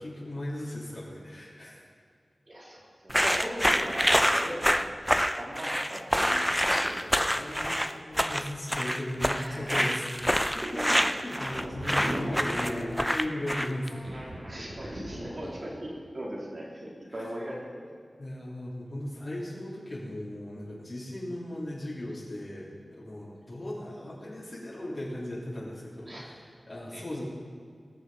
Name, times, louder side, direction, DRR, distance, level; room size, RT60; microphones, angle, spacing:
voice 1, 0.0-1.9 7.2-11.0 11.2-13.9 17.1-17.3 18.2-27.2, left 1 dB, 50° left, -6 dB, 3.2 m, -37 dB
voice 2, 2.5-8.4 9.3-9.6 10.8-11.0 14.5-17.9 26.1-26.2 26.9-27.2, equal, 55° right, -4 dB, 3.6 m, -39 dB
sound 1, 3.1-13.9, equal, ahead, 0.6 m, -26 dB
sound 2, 11.4-12.9 13.8-15.6, right 1 dB, 75° right, 3.8 m, -38 dB
19.0 x 6.5 x 5.6 m, 2.1 s
cardioid pair, 45°, 0 cm